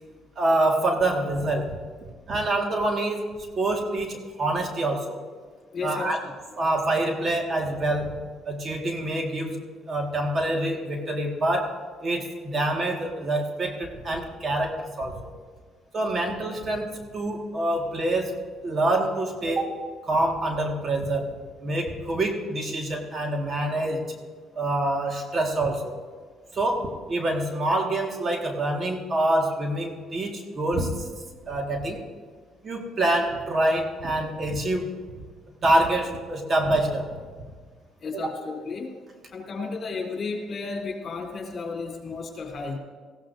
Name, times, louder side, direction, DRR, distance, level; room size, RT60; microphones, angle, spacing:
voice 1, 0.4-1.8 2.3-3.3 3.6-5.2 5.8-6.2 6.6-15.3 15.9-24.1 24.6-26.0 26.5-31.1 31.5-32.0 32.6-35.0 35.6-37.2 38.1-38.3, right 1 dB, 40° right, 2 dB, 1.8 m, -26 dB
voice 2, 5.7-6.2 38.0-38.9 39.3-42.8, left 4 dB, 45° left, 0 dB, 3.4 m, -33 dB
19.0 x 15.5 x 2.7 m, 1.6 s
cardioid pair, 100°, 0 cm